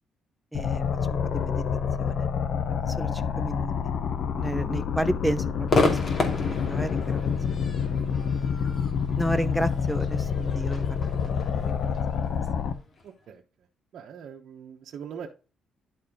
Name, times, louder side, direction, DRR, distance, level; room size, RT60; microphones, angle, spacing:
sound 1, 0.5-12.7, left 7 dB, 65° left, 0.9 m, -28 dB
voice 1, 0.5-0.8 1.1-1.6 2.0-2.3 2.9-3.9 4.3-6.0 6.4-7.3 9.2-10.9 11.2-11.9, right 1 dB, ahead, 12 dB, 1.0 m, -32 dB
Crowd / Fireworks, 5.7-13.0, left 3 dB, 45° left, 2.4 m, -31 dB
voice 2, 13.0-13.7 13.9-15.3, right 7 dB, 65° right, 0 dB, 1.1 m, -43 dB
11.0 x 4.3 x 3.8 m, 0.33 s
cardioid pair, 90°, 0 cm